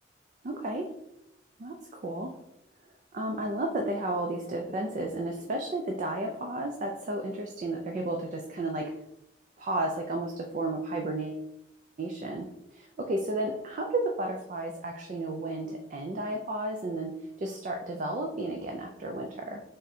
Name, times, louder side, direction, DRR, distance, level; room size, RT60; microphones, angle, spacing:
voice 1, 0.4-0.9 1.6-2.3 3.1-8.9 9.6-11.5 12.0-12.5 12.7-19.6, right 2 dB, 45° right, 2 dB, 0.4 m, -33 dB
3.5 x 2.7 x 4.1 m, 0.82 s
head